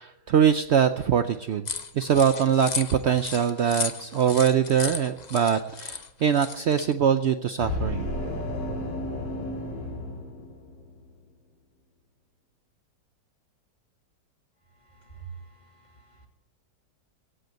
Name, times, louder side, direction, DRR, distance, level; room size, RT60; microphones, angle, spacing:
voice 1, 0.0-1.7 1.9-8.1, right 8 dB, 75° right, 9 dB, 0.6 m, -23 dB
sound 1, 1.6-6.9, left 5 dB, 50° left, 0.5 m, -35 dB
sound 2, 7.6-11.0, left 1 dB, 80° left, 2.9 m, -32 dB
voice 2, 14.8-16.3, right 6 dB, 25° left, 2 dB, 2.6 m, -46 dB
16.5 x 8.0 x 9.0 m, 0.95 s
omnidirectional pair, 1.9 m